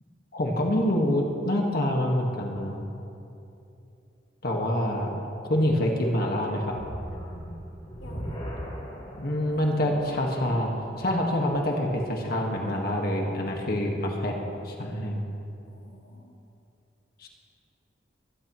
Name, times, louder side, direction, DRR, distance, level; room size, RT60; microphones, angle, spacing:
voice 1, 0.3-2.8 4.4-5.1 5.4-6.6 9.2-10.7 11.0-15.2 17.2-17.3, left 1 dB, 55° left, 0 dB, 1.7 m, -26 dB
voice 2, 1.6-2.3 6.0-6.6 6.9-7.6 8.0-8.4 9.5-10.7 15.7-16.3, left 1 dB, 75° left, -1 dB, 2.5 m, -47 dB
sound 1, 6.6-11.9, equal, 30° left, 4.6 m, -39 dB
23.0 x 17.0 x 3.1 m, 2.7 s
head